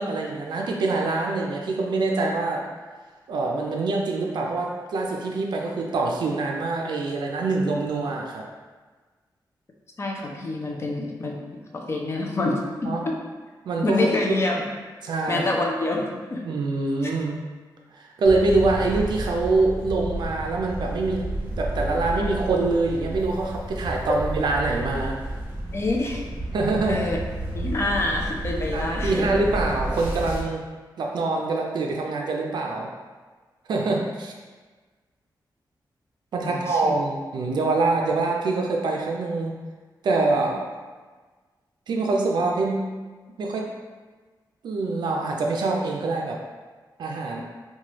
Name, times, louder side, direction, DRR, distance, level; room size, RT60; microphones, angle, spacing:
voice 1, 0.0-2.6 3.3-8.4 12.9-13.0 13.7-14.1 15.0-15.5 16.4-17.4 17.9-25.2 26.5-27.1 28.7-30.6 31.0-32.9 33.7-34.3 36.3-39.6 40.0-40.7 41.9-42.8 43.4-43.7 44.6-46.4 47.0-47.4, right 3 dB, 70° right, 0 dB, 0.4 m, -25 dB
voice 2, 10.0-11.5 11.7-13.2 13.8-14.8 15.3-16.5 17.0-17.1 25.7-26.2 26.9-27.2 27.5-29.3 36.4-36.9, left 2 dB, 35° left, 0 dB, 0.4 m, -27 dB
sound 1, 18.2-30.4, right 1 dB, 25° right, 0.7 m, -31 dB
3.1 x 2.2 x 2.9 m, 1.4 s
wide cardioid pair, 160°, 8 cm